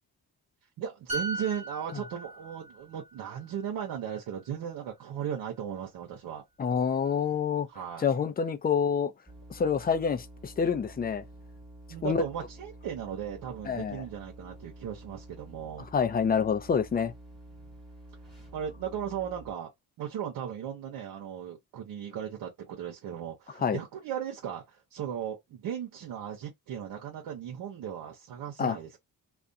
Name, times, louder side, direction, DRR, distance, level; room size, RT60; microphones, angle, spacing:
voice 1, 0.8-6.4 7.7-8.0 11.9-15.9 18.5-19.7 20.0-28.9, right 9 dB, 85° right, 0.8 m, -37 dB
sound 1, 1.1-4.7 5.0-5.3, right 2 dB, 15° right, 1.0 m, -39 dB
voice 2, 6.6-7.7 8.0-9.1 9.5-11.2 12.0-12.2 13.7-14.0 15.9-17.1 23.6-23.8 28.6-28.8, left 6 dB, 25° left, 0.4 m, -27 dB
sound 2, 9.3-19.5, right 1 dB, ahead, 1.2 m, -49 dB
2.4 x 2.2 x 2.6 m
cardioid pair, 100°, 35 cm